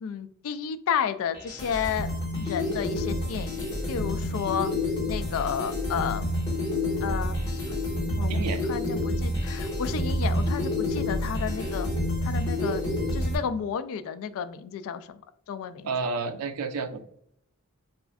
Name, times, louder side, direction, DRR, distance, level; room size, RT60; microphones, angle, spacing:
voice 1, 0.0-2.1 2.4-4.7 5.1-6.4 7.0-7.6 8.2-8.4 8.7-11.9 12.2-12.8 13.1-15.2 15.5-15.9, left 7 dB, 65° left, 12 dB, 0.3 m, -32 dB
sound 1, 1.3-13.4, left 1 dB, 15° left, 1.4 m, -28 dB
voice 2, 8.3-8.6 15.8-17.1, right 4 dB, 85° right, 9 dB, 0.4 m, -30 dB
4.1 x 2.5 x 2.3 m, 0.68 s
head